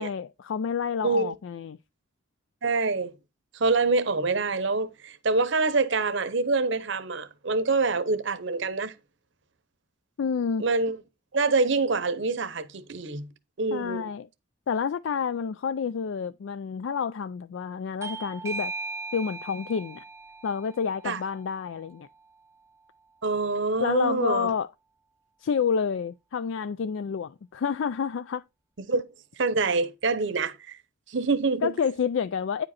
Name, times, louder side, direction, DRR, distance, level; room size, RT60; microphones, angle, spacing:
voice 1, 0.0-1.8 10.2-10.6 13.7-14.3 14.7-18.7 19.1-20.0 20.4-22.1 23.8-24.7 25.4-28.4 31.6-32.7, left 6 dB, 65° left, 0.3 m, -29 dB
voice 2, 1.0-1.3 2.6-3.1 3.5-8.9 10.6-11.0 11.3-13.3 13.6-14.1 21.0-21.2 23.2-24.5 28.9-29.0 29.4-30.8 31.1-31.7, right 3 dB, 60° right, 0.8 m, -26 dB
Bell / Doorbell, 18.0-23.2, right 3 dB, 15° right, 0.4 m, -40 dB
9.5 x 5.1 x 4.1 m
head